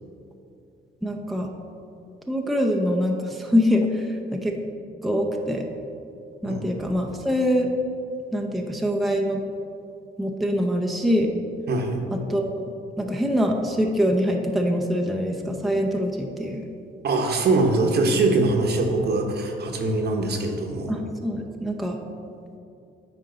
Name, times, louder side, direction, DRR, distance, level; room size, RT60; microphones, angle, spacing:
voice 1, 1.0-1.5 2.3-4.6 5.0-5.7 6.4-7.7 8.3-9.4 10.2-11.3 12.3-12.7 13.0-16.7 20.9-22.0, equal, ahead, 0 dB, 0.6 m, -24 dB
voice 2, 11.7-12.0 17.0-20.9, right 2 dB, 55° right, 2 dB, 1.0 m, -22 dB
9.1 x 4.4 x 3.9 m, 2.6 s
cardioid pair, 90°, 20 cm